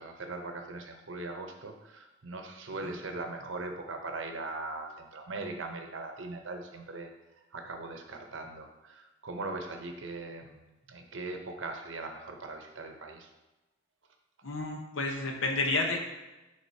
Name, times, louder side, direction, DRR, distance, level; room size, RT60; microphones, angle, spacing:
voice 1, 0.0-7.1 7.5-13.3, right 3 dB, 65° right, 4 dB, 0.8 m, -40 dB
voice 2, 14.4-16.0, left 2 dB, 70° left, 2 dB, 0.9 m, -30 dB
9.3 x 3.6 x 2.7 m, 1.1 s
head